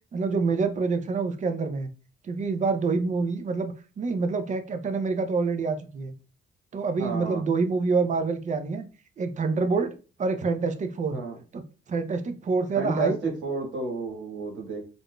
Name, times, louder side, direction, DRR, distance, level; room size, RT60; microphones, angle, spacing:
voice 1, 0.1-1.9 2.2-6.1 6.7-8.9 9.2-9.9 10.2-11.2 11.5-13.2, right 4 dB, 40° right, 8 dB, 0.5 m, -27 dB
voice 2, 7.0-7.4 11.1-11.4 12.8-14.8, right 4 dB, 75° right, 0 dB, 1.3 m, -31 dB
3.4 x 2.5 x 2.2 m, 0.35 s
cardioid pair, 90°, 20 cm